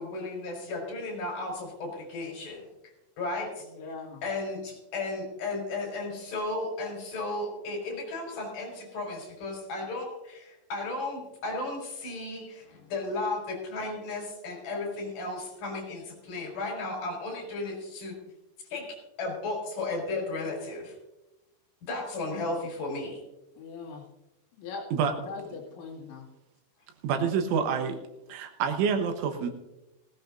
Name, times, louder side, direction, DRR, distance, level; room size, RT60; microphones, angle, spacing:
voice 1, 0.0-2.6 3.2-3.7 4.2-18.2 18.7-18.8 19.2-20.9 21.9-23.2, left 2 dB, 50° left, 0 dB, 5.9 m, -34 dB
voice 2, 3.7-4.2 23.6-24.0 24.6-24.9 25.2-26.3, left 4 dB, 70° left, -2 dB, 4.5 m, -40 dB
voice 3, 27.0-28.0 28.3-29.5, right 6 dB, 80° right, 5 dB, 3.5 m, -27 dB
18.5 x 16.5 x 2.6 m, 0.97 s
omnidirectional pair, 5.7 m